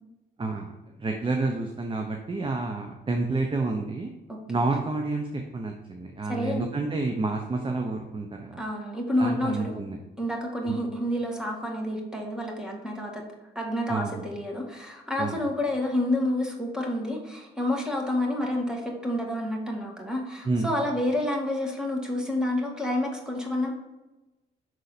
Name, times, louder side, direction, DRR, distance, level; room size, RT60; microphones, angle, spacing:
voice 1, 0.4-0.7 1.0-4.1 4.5-8.6 9.2-10.0 10.6-10.8 13.9-14.2 15.2-15.4 20.5-20.7, right 3 dB, 25° right, 3 dB, 0.8 m, -29 dB
voice 2, 6.3-6.7 8.6-9.8 10.2-13.2 13.6-23.7, left 1 dB, 5° right, 0 dB, 1.7 m, -29 dB
6.4 x 4.0 x 4.1 m, 1.0 s
cardioid pair, 90°, 20 cm